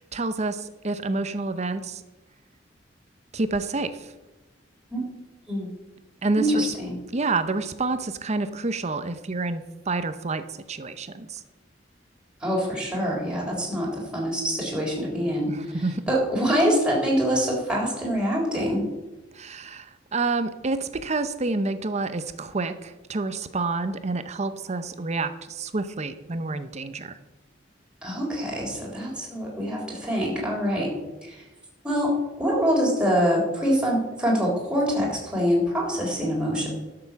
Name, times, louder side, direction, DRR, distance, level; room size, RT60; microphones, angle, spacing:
voice 1, 0.0-2.0 3.3-4.1 6.2-6.7 7.1-11.4 15.5-16.0 19.3-27.2, right 3 dB, 40° right, 11 dB, 0.7 m, -28 dB
voice 2, 6.4-7.0 12.4-15.5 16.1-18.8 28.0-30.9 31.3-31.4 31.8-36.7, equal, 5° right, -4 dB, 3.8 m, -25 dB
12.0 x 6.9 x 7.0 m, 1.1 s
head